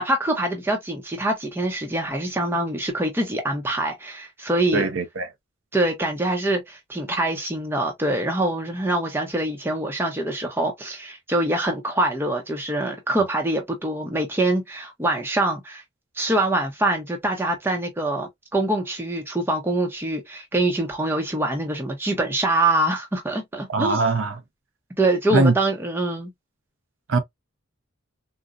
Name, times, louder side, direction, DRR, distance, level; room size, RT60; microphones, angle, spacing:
voice 1, 0.0-4.9 5.7-15.8 16.2-24.0 25.0-26.3, right 1 dB, 10° right, 0.6 m, -24 dB
voice 2, 4.7-5.3 13.2-13.3 23.7-24.4 25.3-25.5 27.1-27.2, right 3 dB, 80° right, 0.6 m, -21 dB
3.9 x 2.0 x 2.3 m
head